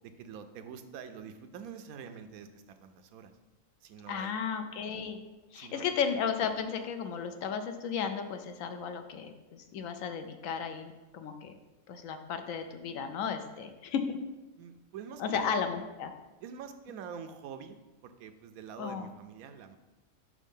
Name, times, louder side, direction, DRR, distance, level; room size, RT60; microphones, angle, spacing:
voice 1, 0.0-2.5 2.8-3.3 3.8-4.3 5.5-5.9 14.6-15.6 16.4-17.8 18.0-19.8, right 7 dB, 90° right, 8 dB, 1.0 m, -45 dB
voice 2, 4.1-5.2 5.5-11.5 11.9-14.2 15.2-16.1 18.8-19.1, left 6 dB, 75° left, 7 dB, 1.0 m, -34 dB
5.6 x 3.7 x 5.3 m, 1.1 s
omnidirectional pair, 1.5 m